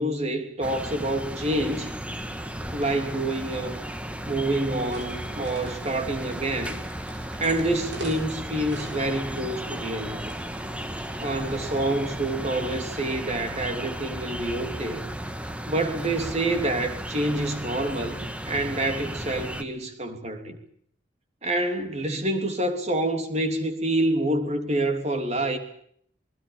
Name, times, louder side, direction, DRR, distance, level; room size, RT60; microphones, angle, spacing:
voice 1, 0.0-2.0 2.7-3.8 4.2-6.8 7.4-10.3 11.2-15.0 15.7-18.2 18.4-20.6 21.4-25.6, right 1 dB, 35° right, 3.3 m, -27 dB
sound 1, 0.6-19.6, right 1 dB, 5° right, 1.5 m, -35 dB
sound 2, 4.7-11.8, right 1 dB, 85° right, 6.8 m, -45 dB
27.5 x 21.0 x 7.2 m
head